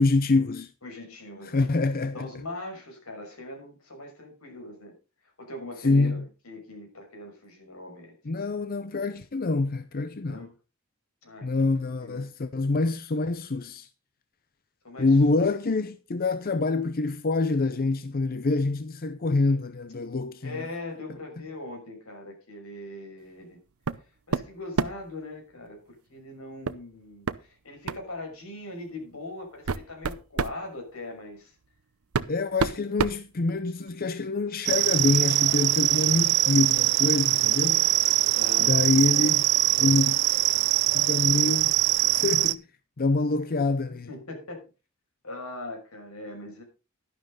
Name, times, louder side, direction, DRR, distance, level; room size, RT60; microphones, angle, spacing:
voice 1, 0.0-0.7 1.4-2.3 5.8-6.3 8.3-10.5 11.4-13.9 15.0-20.7 32.3-38.0 38.6-39.5 39.8-40.2 40.9-41.7 42.0-42.6 43.0-44.1, left 3 dB, 45° left, 0.6 m, -26 dB
voice 2, 0.8-1.7 2.1-5.0 5.4-8.1 10.2-10.5 11.2-11.7 12.0-12.3 14.8-15.1 20.4-23.6 24.3-31.5 37.7-38.8 43.4-43.5 43.9-44.6 45.2-46.6, left 2 dB, 85° left, 6.0 m, -41 dB
sound 1, 23.9-24.0 24.3-25.1 26.7-26.8 27.3-27.4 27.9-28.1 28.9-29.0 29.5-30.6 31.6-31.7 32.1-33.9, right 4 dB, 85° right, 0.7 m, -29 dB
sound 2, 34.7-42.5, right 15 dB, 55° right, 0.5 m, -23 dB
12.0 x 11.5 x 3.9 m
head